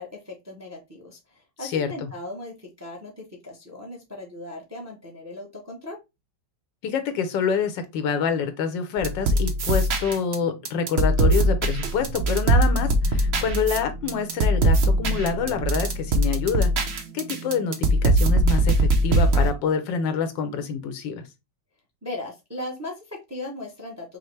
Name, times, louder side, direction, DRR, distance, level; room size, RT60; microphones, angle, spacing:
voice 1, 0.0-6.0 22.0-24.2, left 2 dB, 15° right, 0.6 m, -38 dB
voice 2, 1.6-2.1 6.8-21.3, left 6 dB, 85° left, 1.4 m, -27 dB
sound 1, 9.0-10.3 10.7-19.5, right 1 dB, 55° right, 0.7 m, -21 dB
5.4 x 2.1 x 3.1 m
omnidirectional pair, 1.9 m